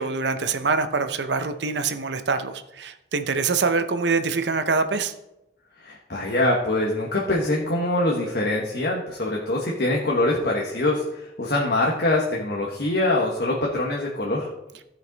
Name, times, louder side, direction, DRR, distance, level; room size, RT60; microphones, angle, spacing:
voice 1, 0.0-5.1, right 4 dB, 70° right, 9 dB, 0.7 m, -24 dB
voice 2, 5.8-14.5, left 2 dB, 55° left, -3 dB, 1.2 m, -24 dB
15.0 x 5.2 x 4.0 m, 0.90 s
head